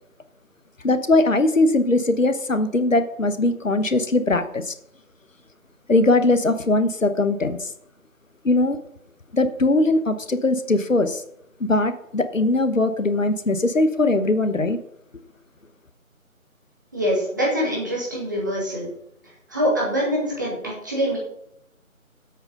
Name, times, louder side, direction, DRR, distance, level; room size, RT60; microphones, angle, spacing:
voice 1, 0.8-4.7 5.9-7.7 8.4-8.8 9.3-11.2 11.6-14.8, left 2 dB, 65° left, 11 dB, 1.1 m, -20 dB
voice 2, 16.9-18.9 19.5-21.2, equal, 15° right, -4 dB, 2.0 m, -24 dB
9.0 x 8.1 x 5.4 m, 0.73 s
figure-of-eight pair, 165°, 42 cm